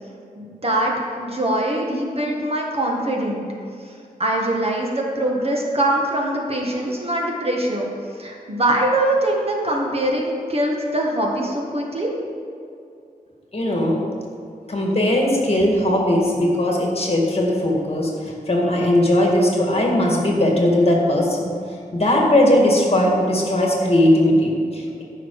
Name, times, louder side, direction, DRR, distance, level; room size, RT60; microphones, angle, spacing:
voice 1, 0.4-3.4 4.2-7.9 8.2-12.1, right 1 dB, 40° right, -1 dB, 1.6 m, -22 dB
voice 2, 13.5-14.1 14.7-21.5 21.9-25.0, left 1 dB, 40° left, -1 dB, 2.0 m, -18 dB
14.5 x 5.8 x 4.8 m, 2.5 s
wide cardioid pair, 100°, 15 cm